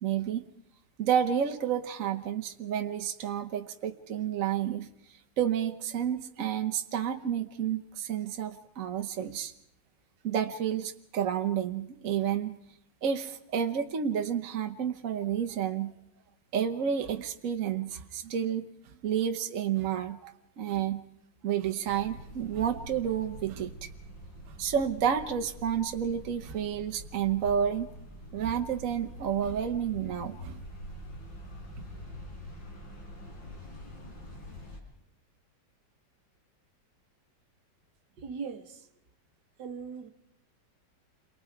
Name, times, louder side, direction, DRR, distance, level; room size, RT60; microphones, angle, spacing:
voice 1, 0.0-0.4 1.0-4.9 5.4-9.5 10.2-12.6 13.0-15.9 16.5-18.6 19.0-21.0 21.4-23.9 24.6-27.9 28.3-30.6, right 8 dB, 50° right, 1.3 m, -30 dB
sound 1, 21.8-34.8, equal, 90° left, 5.3 m, -45 dB
voice 2, 38.2-38.9 39.6-40.1, right 5 dB, 70° right, 1.8 m, -39 dB
29.0 x 23.0 x 4.6 m
omnidirectional pair, 1.9 m